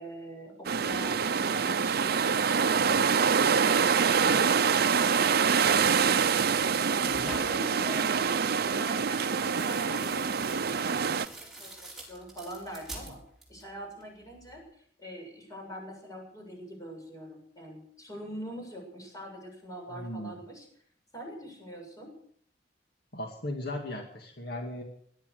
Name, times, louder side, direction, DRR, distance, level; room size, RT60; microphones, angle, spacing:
voice 1, 0.0-3.3 3.7-6.3 6.9-13.2 13.5-14.6 15.0-20.7 21.1-22.1, right 1 dB, 20° left, 1 dB, 7.1 m, -43 dB
sound 1, 0.6-11.3, right 6 dB, 60° right, 0.6 m, -25 dB
sound 2, 6.4-7.8 9.1-13.7 14.0-14.6, right 1 dB, ahead, 5.4 m, -46 dB
voice 2, 19.9-20.4 23.1-24.8, left 1 dB, 60° left, 2 dB, 2.2 m, -37 dB
18.0 x 12.0 x 6.5 m, 0.62 s
head